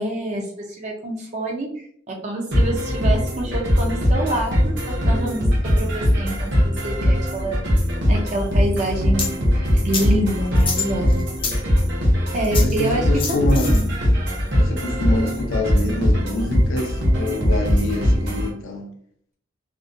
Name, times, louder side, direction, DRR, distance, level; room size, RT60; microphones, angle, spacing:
voice 1, 0.0-1.7 2.1-5.5 5.7-7.6 8.1-9.3 9.8-11.2 11.6-11.8 12.3-13.9, right 1 dB, 35° right, 0.4 m, -26 dB
sound 1, 2.5-18.5, equal, 65° right, 0.8 m, -20 dB
sound 2, 9.2-9.3 9.9-10.1 10.6-11.6 12.4-12.8 13.2-13.8, left 5 dB, 25° left, 0.4 m, -27 dB
voice 2, 12.6-13.8 14.6-18.9, left 2 dB, 85° left, 0.5 m, -26 dB
2.5 x 2.1 x 2.5 m
head